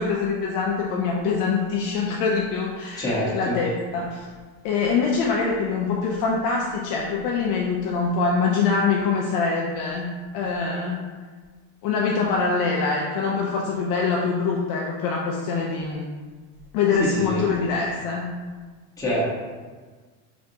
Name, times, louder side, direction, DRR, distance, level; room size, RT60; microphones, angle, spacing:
voice 1, 0.0-4.3 4.6-11.1 11.8-16.1 16.7-18.3, left 4 dB, 50° left, -2 dB, 0.5 m, -24 dB
voice 2, 3.0-3.6 17.0-17.5 19.0-19.2, left 1 dB, 10° left, -8 dB, 1.1 m, -26 dB
5.1 x 3.4 x 2.7 m, 1.4 s
cardioid pair, 160°, 44 cm